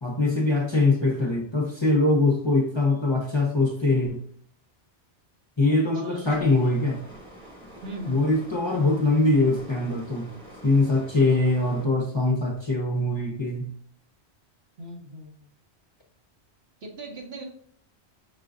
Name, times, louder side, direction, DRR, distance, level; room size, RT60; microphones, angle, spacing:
voice 1, 0.0-4.2 5.6-7.0 8.1-10.3 10.6-13.7, left 2 dB, 30° left, -1 dB, 0.7 m, -23 dB
voice 2, 5.6-6.5 7.8-8.2 14.8-15.3 16.8-17.4, right 1 dB, 65° right, 0 dB, 1.3 m, -39 dB
sound 1, 6.2-11.9, right 1 dB, ahead, 1.8 m, -46 dB
5.5 x 3.7 x 2.5 m, 0.62 s
omnidirectional pair, 1.1 m